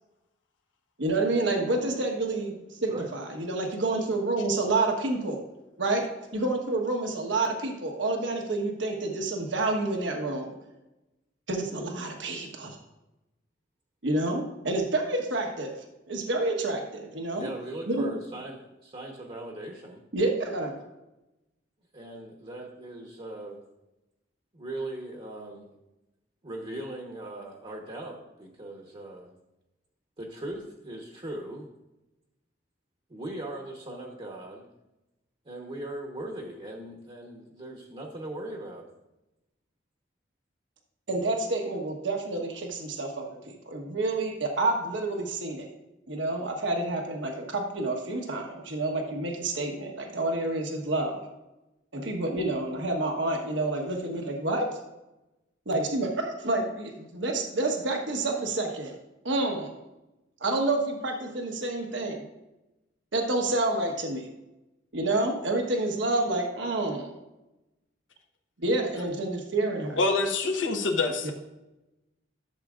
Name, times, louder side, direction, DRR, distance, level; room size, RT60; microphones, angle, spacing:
voice 1, 1.0-5.4 5.8-10.5 11.5-12.8 14.0-15.7 16.1-17.5 17.8-18.1 20.1-20.7 41.1-45.7 46.1-51.2 51.9-54.7 55.7-58.9 59.2-59.7 60.4-62.3 63.1-64.3 64.9-67.1 68.6-70.0 71.2-71.3, right 2 dB, 75° right, 2 dB, 1.2 m, -29 dB
voice 2, 17.3-20.0 21.9-23.6 24.5-25.7 26.4-29.4 30.2-31.7 33.1-34.7 35.5-38.9, right 1 dB, 30° right, 0 dB, 1.0 m, -39 dB
voice 3, 70.0-71.3, left 3 dB, 85° left, 3 dB, 1.1 m, -25 dB
12.5 x 7.3 x 2.5 m, 0.97 s
head